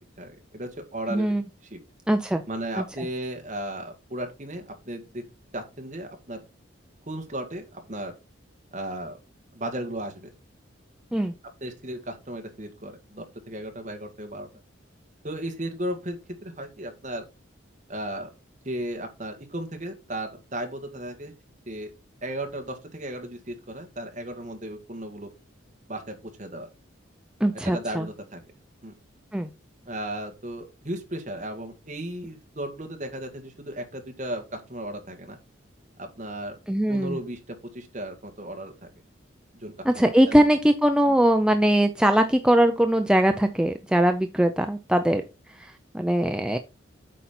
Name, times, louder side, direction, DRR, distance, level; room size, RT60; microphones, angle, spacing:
voice 1, 0.2-1.3 1.7-1.8 2.5-5.2 5.5-6.4 7.1-8.1 8.7-9.2 9.5-10.3 11.6-14.5 15.2-17.3 17.9-18.3 18.7-21.3 21.7-21.9 22.2-25.3 25.9-26.7 27.5-28.4 28.8-28.9 29.9-35.4 36.0-36.6 36.9-38.9 39.5-40.5, right 1 dB, 40° right, 5 dB, 1.8 m, -35 dB
voice 2, 1.1-1.4 2.1-2.4 2.8-3.1 11.1-11.3 27.4-28.1 29.3-29.5 36.7-37.2 39.8-45.2 45.5-46.6, right 1 dB, 5° right, 6 dB, 0.5 m, -21 dB
8.5 x 5.3 x 4.3 m, 0.28 s
head